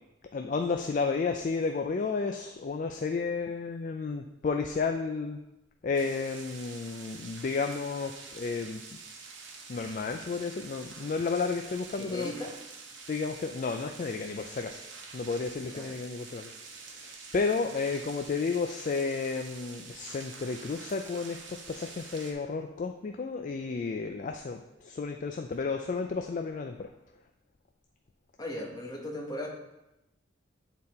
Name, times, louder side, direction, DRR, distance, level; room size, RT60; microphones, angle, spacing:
voice 1, 0.3-5.4 5.8-9.0 9.7-12.3 13.1-14.8 15.1-26.9, left 4 dB, 40° left, 5 dB, 0.3 m, -32 dB
sound 1, 5.9-22.3, right 4 dB, 70° right, 1.0 m, -47 dB
voice 2, 11.9-12.5 15.7-15.9 28.4-29.5, left 1 dB, 20° left, 0 dB, 1.0 m, -37 dB
8.6 x 4.1 x 4.1 m, 0.93 s
head